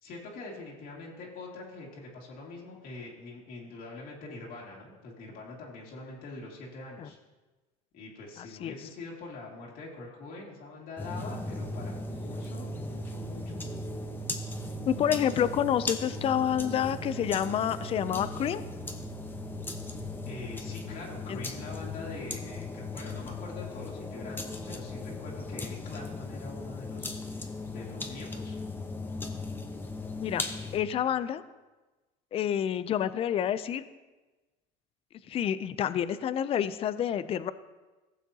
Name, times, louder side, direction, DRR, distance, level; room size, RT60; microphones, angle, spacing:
voice 1, 0.0-7.2 7.9-13.6 20.2-28.6, left 3 dB, 60° left, -4 dB, 2.2 m, -44 dB
voice 2, 8.4-8.7 14.9-18.6 21.3-21.4 30.2-30.4 30.7-31.4 32.3-33.8 35.3-37.5, left 9 dB, 35° left, 14 dB, 0.4 m, -28 dB
sound 1, 11.0-30.8, left 2 dB, 10° left, 0.9 m, -37 dB
15.5 x 7.1 x 2.8 m, 1.2 s
supercardioid pair, 110°, 17 cm